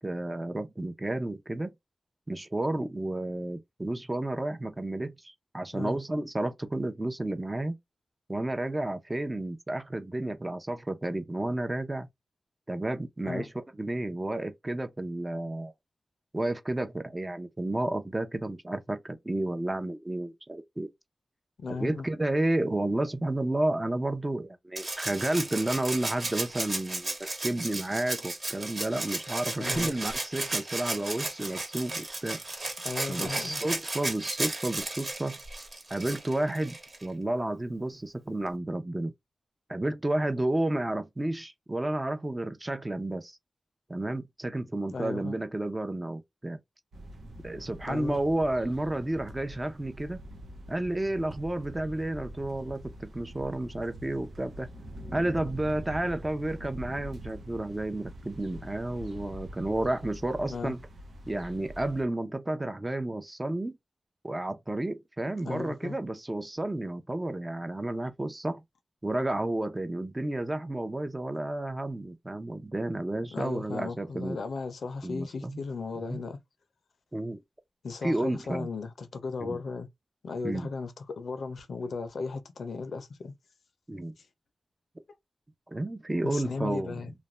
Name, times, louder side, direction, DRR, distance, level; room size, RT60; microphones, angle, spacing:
voice 1, 0.0-1.7 2.3-7.8 8.3-12.1 12.7-13.5 13.8-15.7 16.3-20.9 21.7-27.1 27.4-32.4 33.1-35.4 35.9-36.7 37.0-39.1 39.7-43.4 43.9-46.6 47.4-50.2 50.7-54.7 55.1-60.8 61.3-63.8 64.2-68.6 69.0-74.4 75.0-75.6 76.1-76.2 77.1-77.4 78.0-78.7 79.4-79.6 80.4-80.7 83.9-84.1 85.7-87.0, right 1 dB, 25° right, 0.6 m, -31 dB
voice 2, 21.6-22.1 29.6-29.9 32.8-33.6 44.9-45.3 47.9-48.2 60.5-60.8 65.3-66.0 73.3-76.4 77.8-79.9 80.2-83.3 86.2-87.1, left 4 dB, 85° left, 0.6 m, -36 dB
Rattle (instrument), 24.8-37.1 38.5-38.6, right 2 dB, 45° right, 1.2 m, -34 dB
sound 1, 46.9-62.0, equal, 90° right, 0.7 m, -44 dB
2.5 x 2.2 x 3.1 m
cardioid pair, 60°, 0 cm